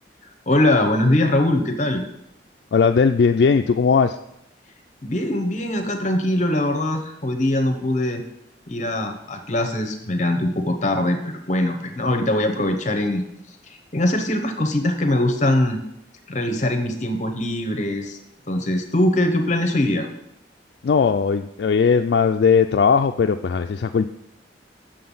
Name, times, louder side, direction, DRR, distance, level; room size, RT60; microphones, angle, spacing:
voice 1, 0.5-2.0 5.0-8.2 8.7-15.8 16.3-18.2 18.5-20.1, left 1 dB, 40° left, 5 dB, 0.9 m, -22 dB
voice 2, 2.7-4.2 20.8-24.1, left 5 dB, 65° left, 6 dB, 0.3 m, -18 dB
7.6 x 6.9 x 5.5 m, 0.81 s
head